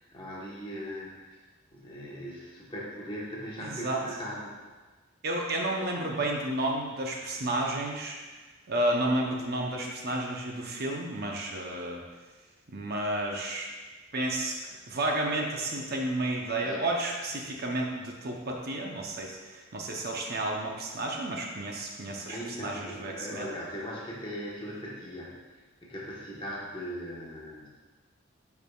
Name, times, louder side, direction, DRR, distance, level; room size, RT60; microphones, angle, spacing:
voice 1, 0.0-1.3 1.7-4.6 16.6-16.8 22.3-25.3 25.8-27.7, equal, 25° left, -5 dB, 1.2 m, -39 dB
voice 2, 3.6-4.0 5.2-8.2 8.7-12.0 12.7-13.7 14.1-14.6 14.9-23.5, right 1 dB, 50° right, 0 dB, 0.7 m, -31 dB
10.5 x 4.7 x 2.4 m, 1.3 s
head